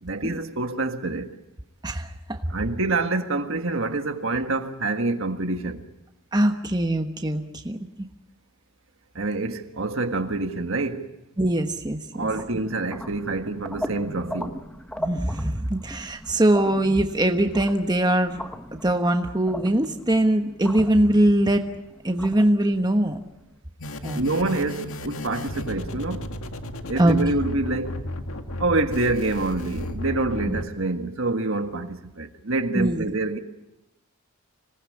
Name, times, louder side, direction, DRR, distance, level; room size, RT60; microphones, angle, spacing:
voice 1, 0.0-1.3 2.5-5.8 9.1-11.1 12.1-14.6 24.1-26.3 26.9-28.0 28.6-33.4, right 2 dB, 60° right, 1.7 m, -26 dB
voice 2, 1.8-2.4 6.3-7.8 11.4-12.3 15.0-18.4 18.8-21.6 22.0-23.2 24.0-24.2 27.0-27.2 30.5-30.6 32.7-33.1, right 1 dB, 20° right, 1.2 m, -22 dB
sound 1, 12.3-23.4, equal, 5° left, 1.3 m, -38 dB
sound 2, 23.8-30.6, left 1 dB, 70° left, 1.9 m, -34 dB
26.0 x 19.0 x 8.6 m
head